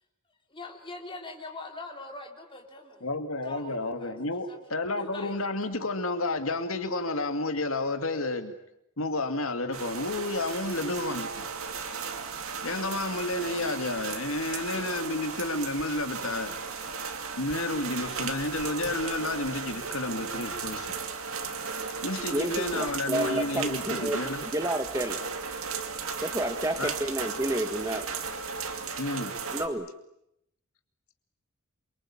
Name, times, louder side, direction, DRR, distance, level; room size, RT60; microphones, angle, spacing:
voice 1, 0.5-3.0 3.4-4.1 4.5-4.7 5.1-5.3, left 2 dB, 25° left, 2 dB, 3.9 m, -42 dB
voice 2, 3.0-8.5 9.0-11.4 12.6-16.5 17.4-20.9 22.0-24.4 26.8-26.9 29.0-29.3, left 2 dB, 65° left, 8 dB, 2.2 m, -31 dB
sound 1, 9.7-29.7, right 5 dB, 70° right, 2.5 m, -35 dB
voice 3, 22.3-24.2 24.5-25.2 26.2-28.1 29.5-29.9, right 1 dB, 15° right, 8 dB, 1.4 m, -30 dB
27.5 x 24.0 x 8.8 m, 0.79 s
head